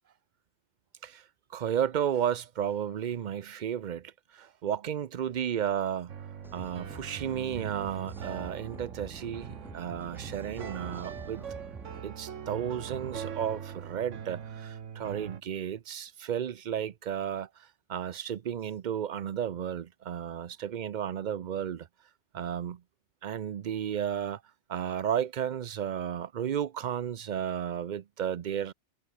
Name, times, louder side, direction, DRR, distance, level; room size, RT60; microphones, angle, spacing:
voice 1, 1.0-6.1 6.5-11.4 12.0-21.9 22.3-22.8 23.2-24.4 24.7-28.7, right 9 dB, 50° right, 0.6 m, -33 dB
sound 1, 6.1-15.4, right 8 dB, 85° right, 1.5 m, -41 dB
sound 2, 6.4-12.0, equal, ahead, 1.8 m, -48 dB
omnidirectional pair, 1.2 m